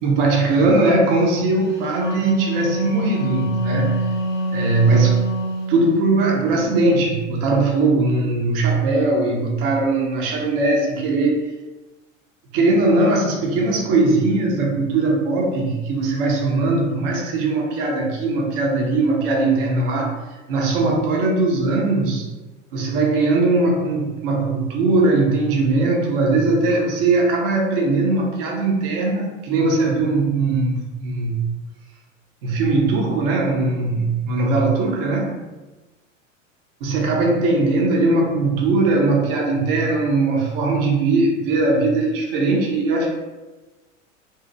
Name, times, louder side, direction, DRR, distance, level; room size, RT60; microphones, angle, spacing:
voice 1, 0.0-4.1 4.5-5.3 5.7-11.5 12.5-22.3 22.7-31.4 32.4-35.3 36.8-43.1, right 3 dB, 45° right, 0 dB, 0.7 m, -20 dB
Wind instrument woodwind instrument, 1.7-5.9, right 1 dB, 10° right, 0.7 m, -25 dB
2.7 x 2.0 x 3.1 m, 1.1 s
figure-of-eight pair, 85°, 39 cm